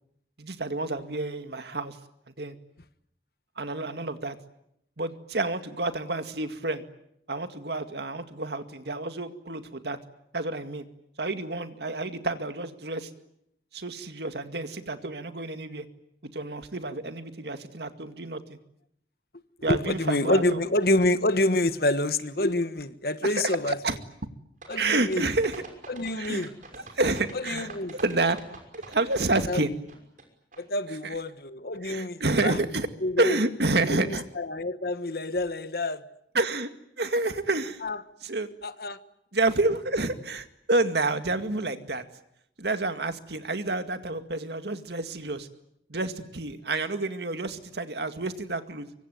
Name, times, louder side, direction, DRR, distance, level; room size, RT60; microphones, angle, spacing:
voice 1, 0.4-2.0 2.3-2.6 3.6-4.4 5.0-6.8 7.3-10.0 10.3-10.9 11.2-13.1 13.7-15.9 16.3-18.6 19.6-20.6 23.2-24.0 24.8-25.6 26.1-26.5 26.9-28.4 28.9-29.7 31.0-31.1 31.8-32.9 33.2-34.2 36.3-36.7 37.0-37.8 38.2-38.5 39.3-42.1 42.6-45.5 45.9-48.9, right 2 dB, 65° right, 8 dB, 2.1 m, -29 dB
voice 2, 19.7-23.8 24.7-25.2 25.9-26.5 27.3-28.0 29.5-29.6 30.6-32.6 33.0-33.4 33.9-36.0 37.8-38.0 38.6-39.0, left 1 dB, 55° left, 12 dB, 1.4 m, -27 dB
sound 1, 24.6-30.2 30.5-30.6, right 3 dB, 45° right, 6.0 m, -44 dB
24.5 x 24.5 x 9.3 m, 0.77 s
head